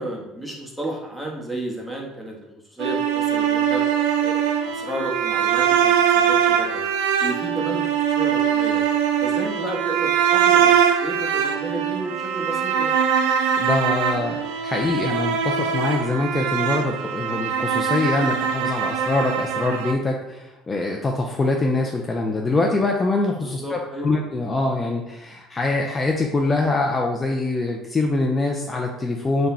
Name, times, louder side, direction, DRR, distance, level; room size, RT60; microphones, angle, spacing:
voice 1, 0.0-2.4 2.7-3.8 4.2-6.8 7.2-8.8 9.2-13.0 23.4-24.1, right 1 dB, 5° right, -2 dB, 1.1 m, -32 dB
sound 1, 2.8-19.9, right 8 dB, 80° right, 0.3 m, -22 dB
voice 2, 13.6-14.4 14.6-29.5, left 2 dB, 25° left, 1 dB, 0.5 m, -24 dB
3.8 x 2.2 x 4.2 m, 0.98 s
supercardioid pair, 85°, 0 cm